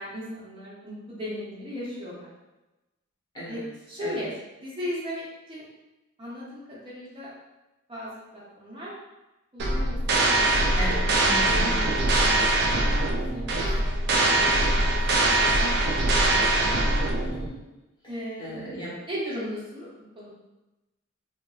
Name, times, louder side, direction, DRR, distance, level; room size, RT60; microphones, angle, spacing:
voice 1, 0.0-2.3 3.4-3.6 3.9-4.3 4.6-5.2 5.5-5.7 6.2-7.3 7.9-8.9 9.5-14.1 14.4-16.3 16.6-17.2 18.1-18.5 19.1-19.9 20.2-20.3, equal, 25° right, -8 dB, 0.7 m, -37 dB
voice 2, 3.3-3.6 4.0-4.2 10.8-11.8 14.1-14.5 17.3-17.6 18.4-19.0, equal, 20° left, -8 dB, 0.9 m, -36 dB
sound 1, 9.6-17.5, right 2 dB, 55° right, 0.4 m, -23 dB
2.8 x 2.5 x 2.3 m, 1.0 s
head